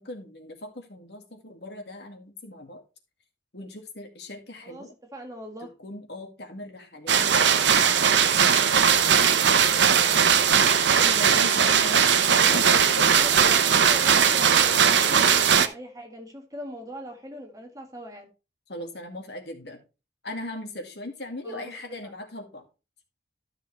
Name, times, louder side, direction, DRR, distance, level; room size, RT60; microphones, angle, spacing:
voice 1, 0.0-2.8 3.5-4.9 5.6-13.1 18.7-19.8 20.2-22.6, left 1 dB, 70° left, 2.0 m, -39 dB
voice 2, 4.6-5.7 12.2-18.3 21.4-21.7 22.0-22.1, equal, 20° right, 1.8 m, -40 dB
sound 1, 7.1-15.7, right 7 dB, 85° right, 0.9 m, -19 dB
13.0 x 6.3 x 3.2 m
head